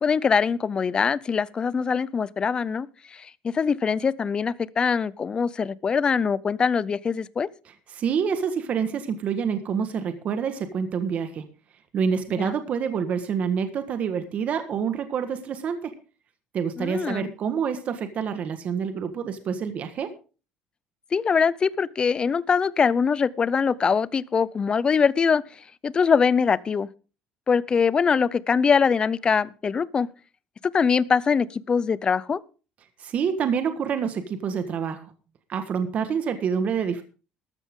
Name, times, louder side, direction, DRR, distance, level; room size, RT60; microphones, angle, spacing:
voice 1, 0.0-7.5 12.4-12.5 16.8-17.3 21.1-26.9 27.5-30.1 30.7-32.4, left 6 dB, 25° left, 0.6 m, -23 dB
voice 2, 7.9-11.4 11.9-15.9 16.5-20.1 33.0-35.1 35.5-37.0, right 7 dB, 45° right, 1.5 m, -27 dB
13.5 x 12.5 x 3.7 m
cardioid pair, 135°, 3 cm